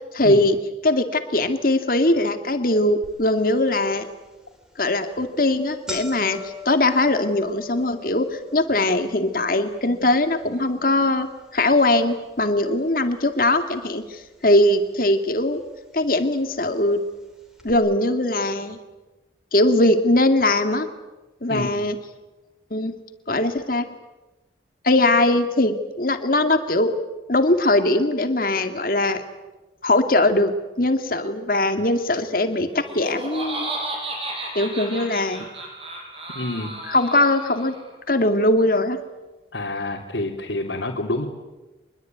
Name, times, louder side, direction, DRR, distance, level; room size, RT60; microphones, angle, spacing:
voice 1, 0.1-0.6 0.8-4.1 4.8-15.6 15.9-17.0 17.6-18.8 19.5-20.9 21.4-22.0 22.7-22.9 23.3-23.9 24.8-26.9 27.3-29.2 29.8-33.7 34.5-35.4 36.9-37.8 38.1-39.0, left 1 dB, 50° left, 7 dB, 2.3 m, -21 dB
sound 1, 3.0-3.1 3.7-3.8 4.6-4.8 5.1-5.2 5.5-13.7 14.0-14.7 15.5-15.6 16.6-16.7 16.9-17.0 17.6-17.7, left 4 dB, 5° right, 4.0 m, -42 dB
voice 2, 21.5-21.9 36.3-36.7 39.5-41.3, left 2 dB, 80° left, -2 dB, 3.3 m, -28 dB
Laughter, 32.7-37.9, right 2 dB, 30° right, 6.4 m, -33 dB
25.5 x 21.5 x 9.4 m, 1.1 s
head